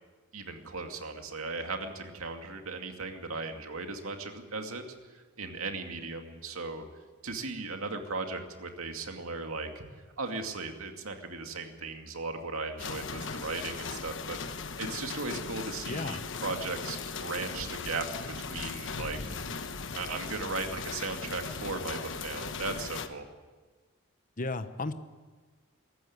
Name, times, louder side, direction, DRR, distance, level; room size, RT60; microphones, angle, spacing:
voice 1, 0.3-4.8 5.1-6.8 7.2-9.9 10.2-18.1 18.4-19.2 19.9-23.2, right 3 dB, 70° right, 4 dB, 2.4 m, -37 dB
sound 1, 12.8-23.1, left 5 dB, 60° left, 1.2 m, -38 dB
voice 2, 15.8-16.2 24.4-24.9, left 3 dB, 35° left, 10 dB, 0.9 m, -34 dB
22.5 x 14.0 x 9.6 m, 1.4 s
head